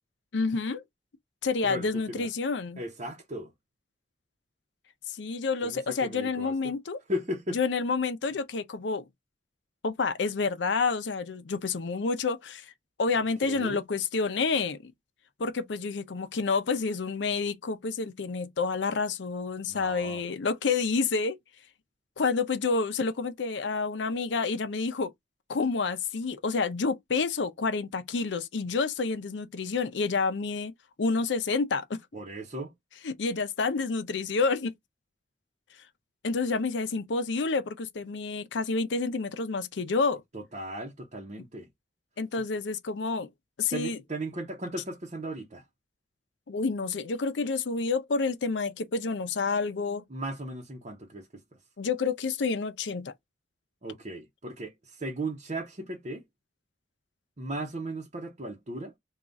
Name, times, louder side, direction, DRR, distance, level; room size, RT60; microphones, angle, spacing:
voice 1, 0.3-0.8 1.4-2.8 5.1-7.0 7.5-9.0 9.8-12.7 13.0-14.9 15.4-21.4 22.2-25.1 25.5-30.7 31.0-32.0 33.0-34.7 36.2-40.2 42.2-43.3 43.6-44.0 46.5-50.0 51.8-53.1, left 4 dB, 80° left, 0.6 m, -29 dB
voice 2, 1.6-2.3 2.8-3.5 5.6-6.7 7.1-7.6 13.4-13.8 19.7-20.2 32.1-32.7 40.3-41.7 43.7-45.6 50.1-51.4 53.8-56.2 57.4-58.9, right 1 dB, 40° right, 0.8 m, -36 dB
3.6 x 2.4 x 3.9 m
head